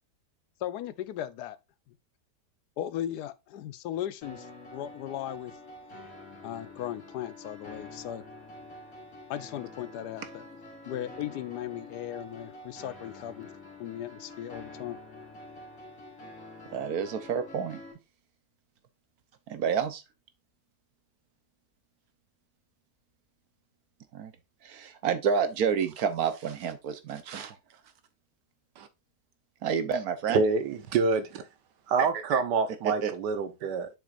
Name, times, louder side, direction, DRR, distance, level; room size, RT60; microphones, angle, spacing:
voice 1, 0.6-1.6 1.9-2.0 2.8-5.5 6.4-8.2 9.3-10.4 10.9-15.0, left 11 dB, 75° left, 1.1 m, -37 dB
sound 1, 4.2-17.9, left 2 dB, 50° left, 2.8 m, -47 dB
voice 2, 16.7-17.8 19.5-20.0 24.1-24.3 24.6-27.6 29.6-30.4 32.8-33.1, right 7 dB, 65° right, 1.3 m, -29 dB
voice 3, 30.3-31.4 31.9-33.9, right 4 dB, 80° right, 1.5 m, -27 dB
7.3 x 6.1 x 2.5 m
omnidirectional pair, 1.8 m